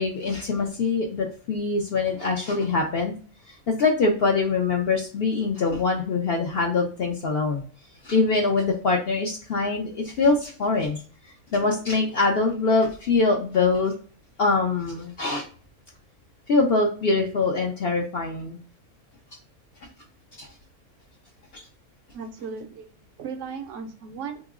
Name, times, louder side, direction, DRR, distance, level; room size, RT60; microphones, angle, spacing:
voice 1, 0.0-3.1 3.5-7.6 8.0-11.0 11.5-13.9 14.4-15.4 16.5-18.6 20.4-20.5 21.5-21.6, left 3 dB, 60° left, 1 dB, 0.6 m, -23 dB
voice 2, 22.1-24.4, right 5 dB, 70° right, 5 dB, 0.8 m, -36 dB
3.5 x 3.0 x 2.3 m, 0.43 s
omnidirectional pair, 1.5 m